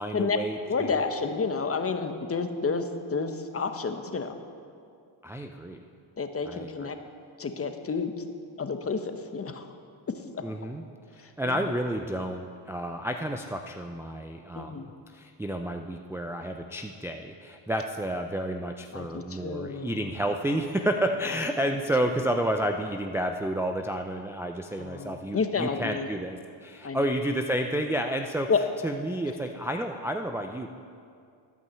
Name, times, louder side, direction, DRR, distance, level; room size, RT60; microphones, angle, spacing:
voice 1, 0.0-1.0 5.2-5.8 6.5-6.9 10.4-10.8 11.1-28.5 28.8-30.7, right 1 dB, 5° right, 3 dB, 0.4 m, -30 dB
voice 2, 0.7-2.8 3.1-4.3 6.2-7.0 7.4-8.1 8.6-9.6 11.4-11.5 14.6-14.9 18.9-20.0 24.8-26.1 26.8-27.0 28.5-28.6, left 5 dB, 30° left, 7 dB, 0.9 m, -30 dB
13.0 x 5.4 x 7.5 m, 2.3 s
cardioid pair, 85°, 47 cm